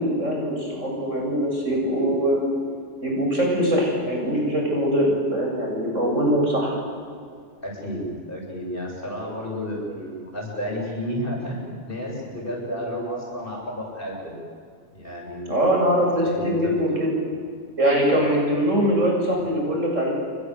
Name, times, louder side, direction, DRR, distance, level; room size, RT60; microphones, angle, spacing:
voice 1, 0.0-2.5 3.0-6.8 15.4-17.1 17.8-20.1, equal, 85° right, -1 dB, 8.0 m, -22 dB
voice 2, 7.6-14.4 14.9-15.8 16.2-17.2, equal, 45° left, -2 dB, 8.3 m, -31 dB
29.0 x 23.5 x 8.3 m, 2.2 s
omnidirectional pair, 1.3 m